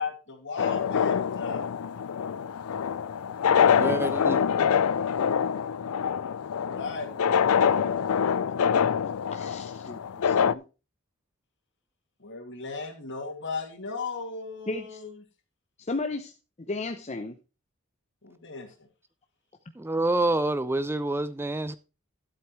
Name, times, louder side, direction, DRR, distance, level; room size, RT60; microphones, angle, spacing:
voice 1, 0.0-1.6 3.6-4.0 6.4-7.9 12.2-15.1 18.2-18.7, left 4 dB, 60° left, 2.6 m, -36 dB
sound 1, 0.6-10.5, left 7 dB, 85° left, 0.4 m, -25 dB
voice 2, 3.8-4.4 19.8-21.8, right 2 dB, 10° right, 0.4 m, -27 dB
voice 3, 9.3-10.0 10.2-10.6 14.7-15.0 15.8-16.3 16.6-17.4, left 3 dB, 30° left, 0.7 m, -34 dB
12.5 x 8.0 x 3.2 m
head